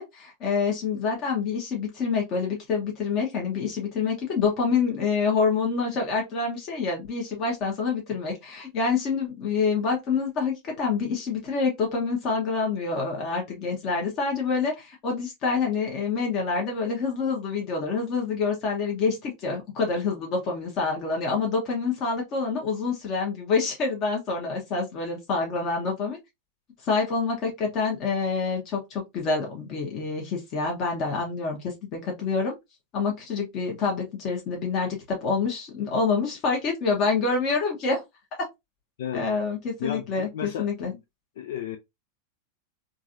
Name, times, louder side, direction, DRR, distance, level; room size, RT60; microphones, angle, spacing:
voice 1, 0.0-26.2 26.8-32.6 32.9-38.0 39.1-40.9, left 4 dB, 35° left, 1.1 m, -27 dB
voice 2, 39.8-41.0 41.4-41.8, left 9 dB, 55° left, 0.3 m, -34 dB
3.8 x 2.6 x 2.6 m
figure-of-eight pair, 90°, 0 cm